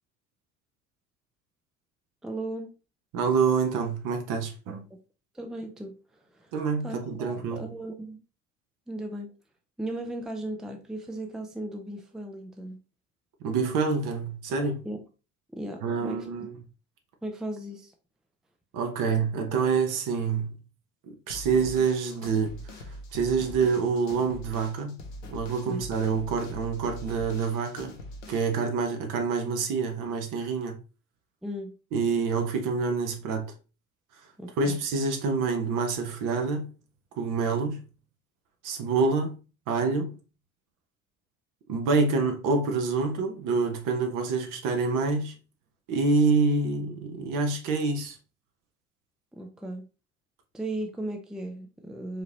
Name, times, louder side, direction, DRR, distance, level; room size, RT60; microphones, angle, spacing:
voice 1, 2.2-2.7 4.9-5.0 5.3-6.5 6.8-8.2 8.9-9.3 9.8-12.8 14.8-15.0 15.5-16.5 17.2-17.9 25.7-25.8 31.4-31.8 34.4-34.8 49.3-49.9 50.5-52.2, right 1 dB, ahead, 0.5 m, -36 dB
voice 2, 3.1-4.9 6.5-7.7 13.4-14.8 15.8-16.5 18.7-20.6 21.3-22.8 23.1-25.0 25.3-27.9 28.3-30.8 31.9-33.5 34.6-36.7 37.2-37.8 38.6-39.4 39.7-40.1 41.7-45.3 45.9-48.2, right 4 dB, 50° right, 1.0 m, -27 dB
sound 1, 21.3-28.6, left 1 dB, 75° left, 0.9 m, -43 dB
4.9 x 2.9 x 2.9 m
figure-of-eight pair, 60°, 40 cm